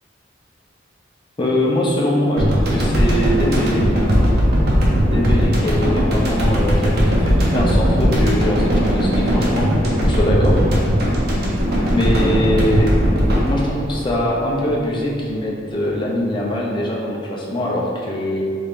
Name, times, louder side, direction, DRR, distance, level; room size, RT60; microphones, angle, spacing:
voice 1, 1.4-3.8 5.0-9.7 10.0-10.6 11.9-12.9 13.5-18.4, left 1 dB, 25° left, -3 dB, 0.5 m, -22 dB
sound 1, 2.4-14.8, equal, 55° right, 0.7 m, -18 dB
3.5 x 3.3 x 2.5 m, 2.2 s
head